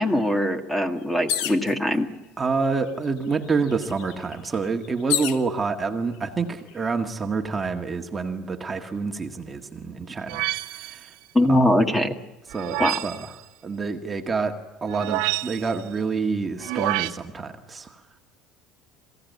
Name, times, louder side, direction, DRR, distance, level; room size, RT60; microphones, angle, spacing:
voice 1, 0.0-2.1 11.3-12.1 12.8-13.0, left 1 dB, 10° left, 6 dB, 2.0 m, -21 dB
sound 1, 1.3-1.7 2.6-2.7 3.1-5.4 6.2-6.7, left 10 dB, 75° left, 1.4 m, -29 dB
voice 2, 2.4-11.1 11.5-11.7 12.5-13.3 13.6-18.0, right 4 dB, 20° right, 3 dB, 1.8 m, -28 dB
sound 2, 10.3-11.1 12.5-13.3 14.9-15.8 16.6-17.1, right 19 dB, 75° right, 0.9 m, -28 dB
28.0 x 16.5 x 9.5 m, 1.1 s
supercardioid pair, 125°, 0 cm